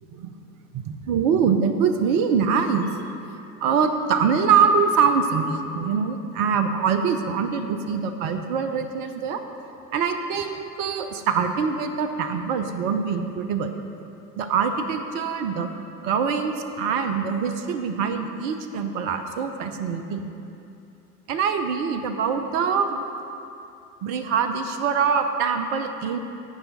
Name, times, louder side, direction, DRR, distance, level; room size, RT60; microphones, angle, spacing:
voice 1, 0.7-2.9 3.6-9.4 9.9-13.7 14.4-15.7 16.0-20.3 21.3-23.0 24.0-26.2, right 6 dB, 35° right, 8 dB, 0.7 m, -24 dB
17.0 x 5.6 x 4.1 m, 2.8 s
figure-of-eight pair, 85°, 47 cm